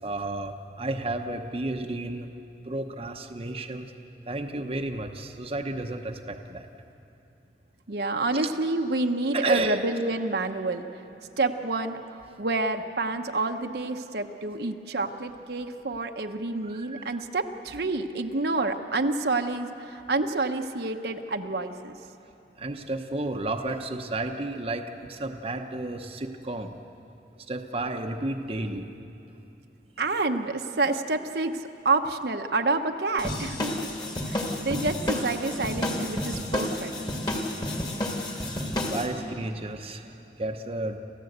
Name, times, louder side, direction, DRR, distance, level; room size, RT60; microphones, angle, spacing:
voice 1, 0.0-2.3 2.6-3.9 4.3-6.7 8.3-8.5 9.3-9.8 16.6-17.2 22.6-26.7 27.5-28.9 38.2-41.0, right 2 dB, 35° right, 4 dB, 0.9 m, -32 dB
voice 2, 7.9-10.8 11.4-21.9 30.0-33.9 34.3-36.9, right 3 dB, 65° right, 5 dB, 0.9 m, -28 dB
sound 1, 33.2-39.1, left 1 dB, 25° left, 2.1 m, -30 dB
28.0 x 15.0 x 8.0 m, 2.9 s
head